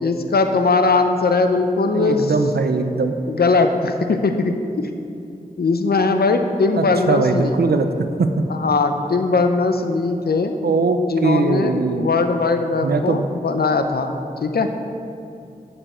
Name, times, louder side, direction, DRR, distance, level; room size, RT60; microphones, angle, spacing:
voice 1, 0.0-2.3 3.3-4.9 5.6-7.6 8.5-10.5 11.1-11.7 12.0-14.1 14.4-14.7, left 3 dB, 80° left, 6 dB, 0.6 m, -19 dB
voice 2, 1.9-3.1 6.8-7.9 8.2-8.3 10.6-12.1 12.8-13.3, right 4 dB, 90° right, 7 dB, 0.6 m, -20 dB
8.9 x 6.9 x 4.4 m, 2.5 s
wide cardioid pair, 55°, 16 cm